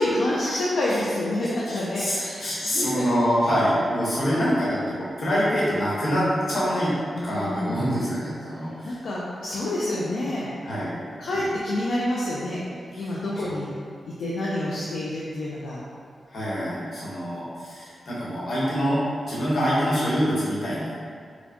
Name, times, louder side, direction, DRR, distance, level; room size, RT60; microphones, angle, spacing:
voice 1, 0.0-3.1 4.4-4.6 7.1-7.9 8.6-10.5 11.2-12.6 13.0-13.7 14.1-15.8 19.6-19.7, left 1 dB, 85° left, -7 dB, 0.4 m, -28 dB
voice 2, 1.4-6.9 7.2-8.9 10.6-10.9 11.2-11.4 12.9-13.0 16.3-21.0, equal, 65° left, -8 dB, 1.2 m, -25 dB
4.2 x 2.3 x 2.8 m, 2.2 s
cardioid pair, 80°, 0 cm